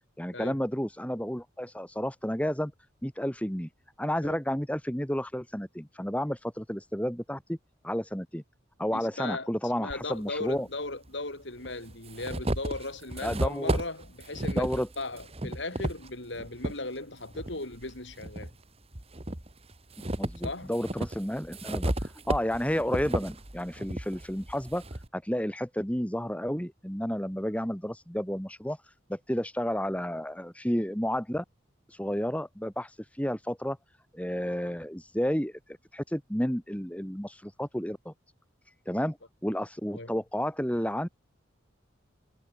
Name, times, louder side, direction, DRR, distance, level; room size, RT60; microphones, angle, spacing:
voice 1, 0.2-2.7 3.0-3.7 4.0-7.6 7.8-8.4 8.8-10.7 13.2-13.7 14.6-14.9 20.0-24.8 25.1-28.8 29.1-31.4 31.9-32.9 33.2-33.8 34.1-35.5 35.9-38.1 38.9-39.2 39.4-41.1, equal, 5° left, 3.7 m, -31 dB
voice 2, 8.9-9.5 9.8-14.7 15.0-18.5 20.4-20.7 39.9-40.1, left 2 dB, 65° left, 5.7 m, -37 dB
sound 1, 9.9-10.0 11.1-11.2 11.6-16.8 17.3-18.5 18.9-25.1, right 1 dB, 30° right, 2.1 m, -33 dB
head